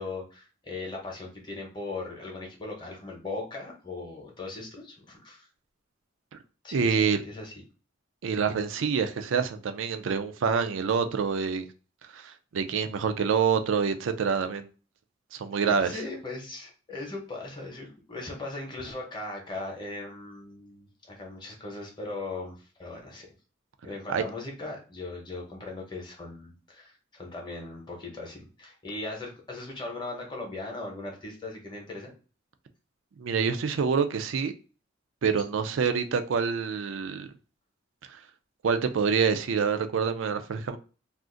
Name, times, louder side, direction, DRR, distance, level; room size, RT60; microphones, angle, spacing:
voice 1, 0.0-5.5 6.6-7.5 15.7-23.3 23.8-32.1, left 2 dB, 20° left, 0.8 m, -39 dB
voice 2, 6.7-7.2 8.2-11.7 12.1-14.7 15.3-15.9 24.1-24.2 33.2-34.5 35.2-37.3 38.6-40.8, right 6 dB, 70° right, 0.4 m, -26 dB
2.4 x 2.4 x 3.7 m
head